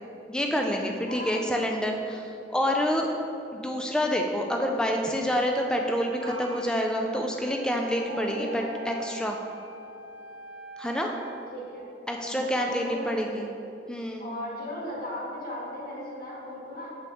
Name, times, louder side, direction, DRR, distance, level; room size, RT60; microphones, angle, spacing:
voice 1, 0.3-3.1 3.5-9.4 10.8-11.1 12.1-13.5 13.9-14.3, equal, 5° left, 2 dB, 0.4 m, -27 dB
voice 2, 1.1-1.4 6.2-6.5 8.0-8.8 11.5-11.9 12.2-13.5 14.2-16.9, left 1 dB, 50° left, -7 dB, 1.5 m, -37 dB
Wind instrument woodwind instrument, 5.6-11.6, right 3 dB, 85° right, 0.5 m, -45 dB
7.0 x 5.0 x 3.0 m, 2.7 s
head